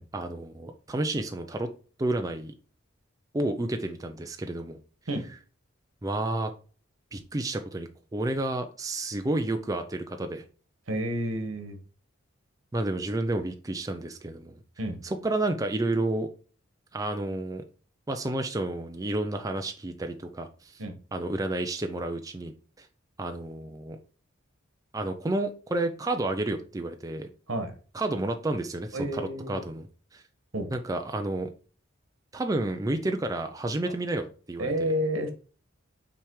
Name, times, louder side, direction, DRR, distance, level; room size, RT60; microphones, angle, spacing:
voice 1, 0.1-1.7 2.0-2.5 3.3-4.8 5.1-5.4 6.0-6.5 7.1-10.4 12.7-14.6 15.0-16.3 16.9-17.6 18.1-20.8 21.1-22.9 23.2-24.0 24.9-27.3 27.9-29.9 30.1-30.2 30.7-31.5 32.3-34.9, right 2 dB, 15° right, 5 dB, 0.4 m, -31 dB
voice 2, 10.9-11.8 14.8-15.0 20.8-20.9 27.5-27.7 28.9-29.6 30.5-30.7 33.9-34.0 34.6-35.3, equal, 75° right, 6 dB, 1.4 m, -30 dB
5.9 x 3.4 x 4.7 m, 0.39 s
head